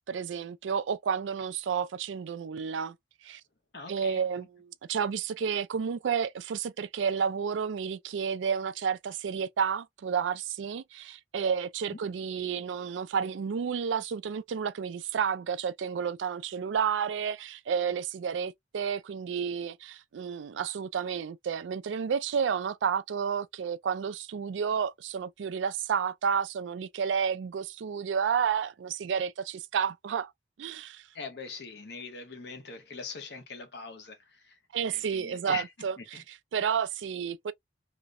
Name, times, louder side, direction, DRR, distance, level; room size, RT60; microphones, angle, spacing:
voice 1, 0.1-2.9 3.2-3.4 3.9-30.3 30.6-31.0 34.7-37.5, right 7 dB, 85° right, 0.4 m, -31 dB
voice 2, 3.7-4.2 31.1-34.5 34.9-35.7 36.0-36.2, left 4 dB, 65° left, 0.9 m, -42 dB
2.9 x 2.0 x 2.3 m
head